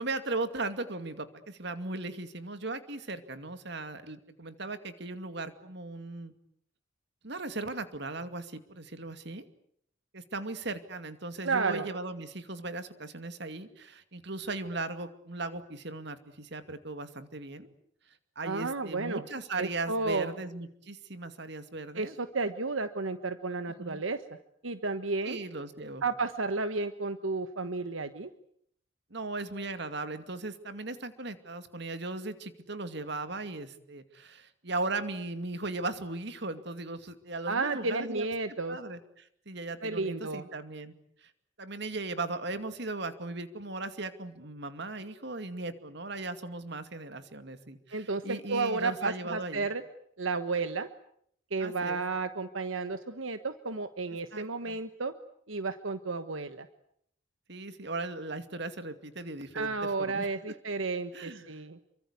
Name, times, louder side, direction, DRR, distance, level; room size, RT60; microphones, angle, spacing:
voice 1, 0.0-6.3 7.2-9.4 10.1-17.7 18.4-22.1 23.7-24.0 25.2-26.0 29.1-38.3 38.7-40.9 41.2-41.3 41.6-49.7 51.6-52.0 54.3-54.8 57.5-60.3 61.1-61.6, right 2 dB, 60° right, 10 dB, 2.4 m, -38 dB
voice 2, 11.4-11.9 18.4-19.2 19.6-20.3 21.9-24.2 24.6-25.4 26.0-28.3 37.5-38.8 39.8-40.5 47.9-49.8 50.2-50.9 51.5-55.1 55.5-56.7 59.5-61.8, right 3 dB, 85° right, 10 dB, 1.4 m, -32 dB
28.5 x 24.0 x 8.3 m, 0.69 s
head